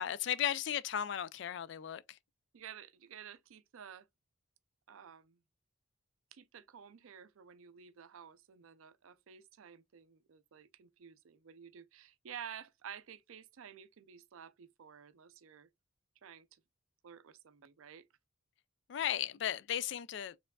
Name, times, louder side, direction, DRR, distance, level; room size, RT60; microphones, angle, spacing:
voice 1, 0.0-2.2 18.9-20.4, left 10 dB, 55° left, 0.3 m, -35 dB
voice 2, 2.5-4.1 4.9-5.4 6.3-15.7 16.2-16.5 17.0-18.1, right 8 dB, 75° right, 0.4 m, -52 dB
4.5 x 3.5 x 2.2 m
head